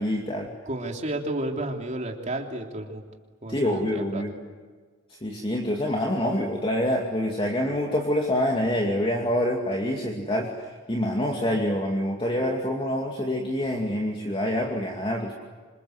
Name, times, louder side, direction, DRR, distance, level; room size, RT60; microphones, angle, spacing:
voice 1, 0.0-0.5 3.5-4.3 5.2-10.5 10.9-15.3, left 1 dB, 25° left, 0 dB, 2.6 m, -26 dB
voice 2, 0.6-3.1 3.4-4.2, right 1 dB, 40° right, 2 dB, 3.3 m, -32 dB
27.5 x 26.0 x 8.1 m, 1.5 s
head